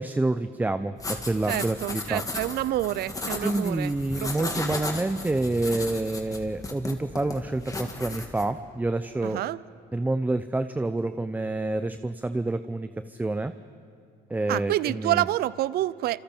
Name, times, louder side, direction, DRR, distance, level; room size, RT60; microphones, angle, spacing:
voice 1, 0.0-2.2 3.4-9.4 9.9-13.5 14.3-15.3, right 2 dB, 10° right, 11 dB, 0.6 m, -28 dB
sound 1, 1.0-8.5, left 2 dB, 20° left, 2.2 m, -35 dB
voice 2, 1.5-4.8 9.2-9.6 14.5-16.2, right 14 dB, 70° right, 19 dB, 0.6 m, -28 dB
28.5 x 27.0 x 4.5 m, 2.4 s
cardioid pair, 110°, 17 cm